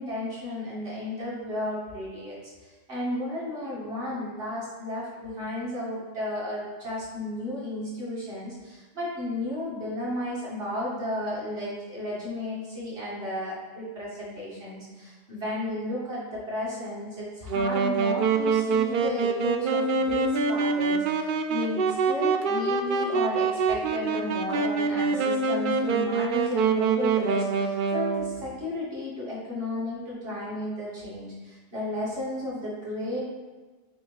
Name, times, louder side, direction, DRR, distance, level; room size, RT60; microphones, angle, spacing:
voice 1, 0.0-33.3, left 1 dB, 45° right, -7 dB, 2.3 m, -33 dB
Wind instrument woodwind instrument, 17.5-28.4, right 4 dB, 70° right, 0.5 m, -25 dB
8.6 x 3.1 x 4.0 m, 1.3 s
omnidirectional pair, 1.4 m